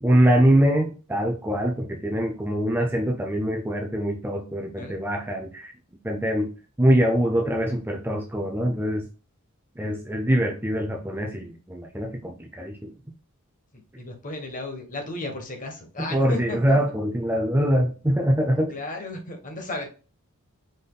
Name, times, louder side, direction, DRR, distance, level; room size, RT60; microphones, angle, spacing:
voice 1, 0.0-5.7 6.0-6.5 6.8-9.1 9.8-12.9 16.0-18.7, equal, 10° right, 2 dB, 0.5 m, -23 dB
voice 2, 14.0-16.8 18.7-19.9, left 2 dB, 35° left, 4 dB, 1.1 m, -34 dB
5.2 x 4.1 x 2.2 m, 0.35 s
head